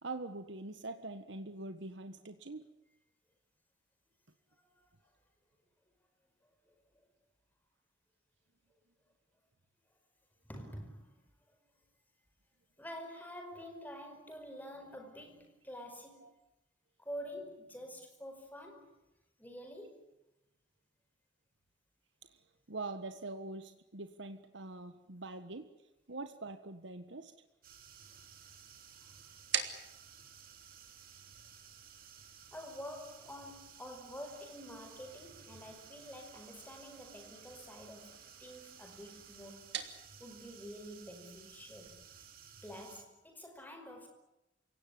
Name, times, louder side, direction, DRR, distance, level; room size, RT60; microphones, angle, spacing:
voice 1, 0.0-2.7 16.2-16.3 22.2-25.7 26.1-27.3, right 2 dB, 85° right, 1.6 m, -44 dB
voice 2, 4.5-5.1 6.4-7.1 10.5-11.2 11.5-11.6 12.8-16.4 17.0-19.0 19.4-20.1 32.5-39.8 40.2-42.0 42.6-44.1, equal, 10° left, 5.1 m, -48 dB
sound 1, 27.6-43.0, right 8 dB, 50° right, 3.1 m, -56 dB
sound 2, 28.0-42.3, right 8 dB, 65° right, 2.8 m, -48 dB
28.5 x 17.5 x 9.6 m
head